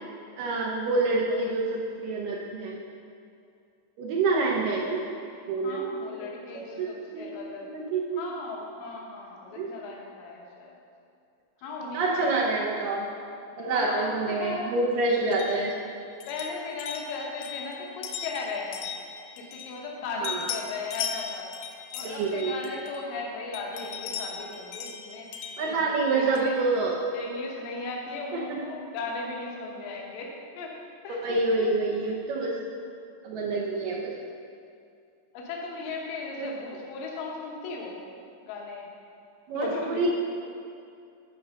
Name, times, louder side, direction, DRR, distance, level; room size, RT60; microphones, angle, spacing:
voice 1, 0.4-2.8 4.0-5.0 5.5-6.9 7.1-7.3 7.6-8.3 9.5-9.7 11.9-13.1 13.6-15.7 20.2-20.4 22.0-22.5 25.6-26.9 28.3-28.6 31.2-32.5 33.2-34.1 36.4-36.5 39.5-40.1, right 3 dB, 75° right, -4 dB, 2.2 m, -27 dB
voice 2, 5.6-7.7 8.2-10.7 11.6-12.3 13.6-14.7 16.3-18.9 19.4-21.5 21.9-26.5 27.1-30.7 31.0-31.7 33.4-33.7 35.3-38.0 38.4-38.9 39.5-40.1, left 3 dB, 70° left, -1 dB, 2.7 m, -37 dB
sound 1, 15.3-20.0 20.2-23.2 23.5-26.6, left 7 dB, 85° left, 1.9 m, -38 dB
11.0 x 4.7 x 5.3 m, 2.5 s
omnidirectional pair, 4.3 m